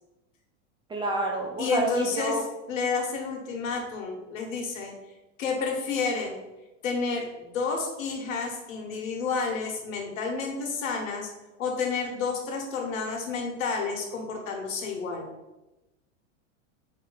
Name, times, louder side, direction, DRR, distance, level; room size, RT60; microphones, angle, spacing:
voice 1, 0.9-2.4, right 2 dB, 15° right, 0 dB, 0.3 m, -28 dB
voice 2, 1.6-2.4 2.7-4.9 5.4-6.4 6.8-11.3 11.6-15.3, left 4 dB, 85° left, 2 dB, 1.3 m, -30 dB
4.4 x 3.0 x 3.9 m, 1.0 s
supercardioid pair, 120°, 39 cm